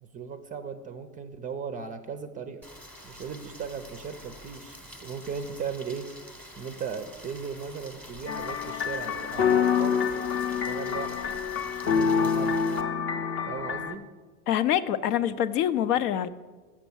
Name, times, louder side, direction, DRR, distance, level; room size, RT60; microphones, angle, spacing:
voice 1, 0.0-2.6 3.0-6.1 6.6-10.0 10.7-11.2 11.8-12.6 13.5-14.0, right 6 dB, 20° right, 9 dB, 0.4 m, -37 dB
Rain, 2.6-12.8, equal, 5° left, 0.9 m, -47 dB
sound 1, 8.3-13.9, left 6 dB, 25° left, 0.5 m, -27 dB
voice 2, 14.5-16.3, left 10 dB, 75° left, 13 dB, 0.6 m, -25 dB
7.3 x 6.0 x 7.0 m, 1.4 s
hypercardioid pair, 95°, 47 cm